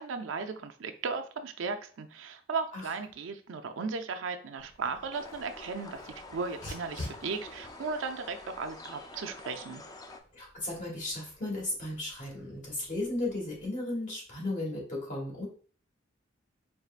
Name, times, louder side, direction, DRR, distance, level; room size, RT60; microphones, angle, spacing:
voice 1, 0.0-9.8, right 4 dB, 80° right, 7 dB, 0.5 m, -36 dB
Dog, 4.6-13.7, left 1 dB, 75° left, 1.5 m, -49 dB
sound 1, 5.1-10.2, left 2 dB, 20° left, 0.4 m, -47 dB
voice 2, 10.3-15.5, left 2 dB, 40° left, -3 dB, 1.6 m, -35 dB
4.5 x 3.2 x 2.4 m, 0.43 s
head